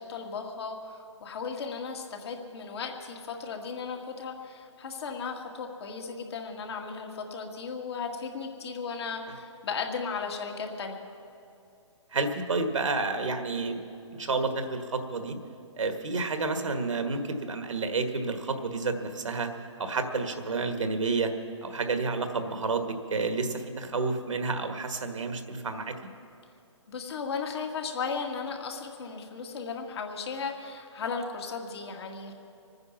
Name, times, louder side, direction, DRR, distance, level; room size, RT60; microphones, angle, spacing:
voice 1, 0.0-11.0 26.9-32.3, left 5 dB, 55° left, 2 dB, 2.1 m, -36 dB
voice 2, 12.1-13.8 14.1-15.4 15.8-19.5 19.8-21.3 21.6-22.8 23.1-25.9, right 3 dB, 80° right, 7 dB, 1.6 m, -30 dB
24.5 x 9.6 x 6.0 m, 2.7 s
hypercardioid pair, 145°, 16 cm